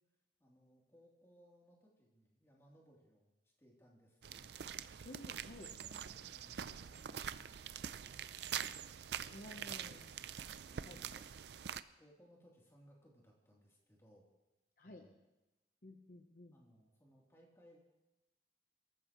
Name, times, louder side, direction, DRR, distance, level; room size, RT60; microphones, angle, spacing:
voice 1, 0.4-4.7 5.4-8.6 9.5-10.3 10.6-11.4 12.0-14.2 14.8-15.2 16.5-17.8, equal, 15° left, -3 dB, 3.2 m, -66 dB
sound 1, 4.2-11.8, right 8 dB, 75° right, 0.5 m, -45 dB
voice 2, 5.0-5.7 9.3-10.1 10.8-11.0 14.8-15.0 15.8-16.5, left 1 dB, 50° left, 3 dB, 1.0 m, -53 dB
23.5 x 14.0 x 3.1 m, 0.99 s
head